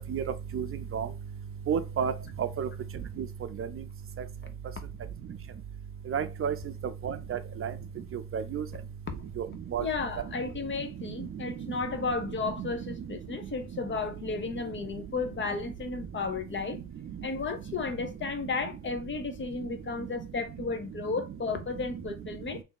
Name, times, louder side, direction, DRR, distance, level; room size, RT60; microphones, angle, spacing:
voice 1, 1.7-2.1 2.4-2.7 3.2-3.3 3.6-3.7 6.1-6.5 7.0-7.7 8.3-8.6 9.4-9.5 9.7-9.8 12.6-12.7, right 7 dB, 45° right, 0.5 m, -30 dB
voice 2, 9.8-16.8 17.2-22.6, left 4 dB, 40° left, 0.8 m, -33 dB
3.5 x 2.7 x 3.8 m
cardioid pair, 90°, 30 cm